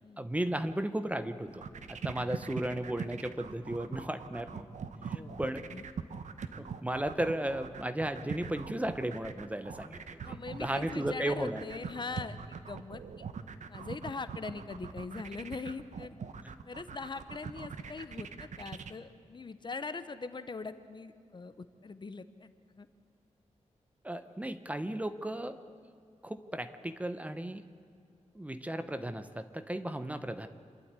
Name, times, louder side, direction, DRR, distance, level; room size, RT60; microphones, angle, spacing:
voice 1, 0.2-4.7 5.1-5.6 6.6-10.2 10.6-11.6 24.0-25.6 26.2-27.6 28.3-30.5, right 1 dB, 10° right, 10 dB, 0.9 m, -35 dB
sound 1, 1.5-18.9, right 6 dB, 85° right, 1.0 m, -42 dB
voice 2, 5.0-5.4 5.7-5.9 10.2-13.2 13.7-16.1 16.7-22.9, left 4 dB, 40° left, 12 dB, 0.9 m, -42 dB
26.5 x 12.0 x 9.6 m, 2.4 s
wide cardioid pair, 145°, 12 cm